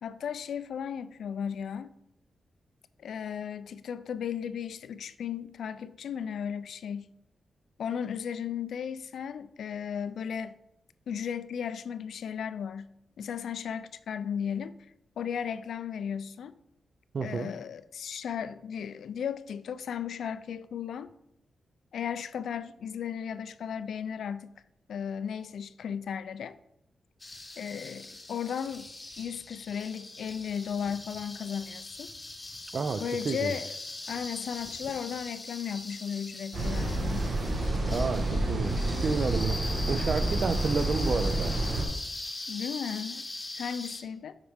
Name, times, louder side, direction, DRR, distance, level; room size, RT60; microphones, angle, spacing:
voice 1, 0.0-1.9 3.0-7.1 7.8-10.5 11.1-12.9 13.2-14.8 15.2-16.6 17.2-21.1 21.9-24.5 24.9-26.6 27.6-28.9 29.2-32.1 33.0-33.7 34.1-37.3 42.5-43.3 43.5-44.4, left 8 dB, 80° left, 0.3 m, -35 dB
voice 2, 17.1-17.6 32.7-33.6 37.9-41.6, right 4 dB, 50° right, 0.3 m, -31 dB
sound 1, 27.2-44.0, left 2 dB, 20° left, 0.8 m, -41 dB
sound 2, 36.5-41.8, right 1 dB, 70° right, 1.3 m, -29 dB
7.0 x 4.8 x 3.5 m
wide cardioid pair, 110°, 0 cm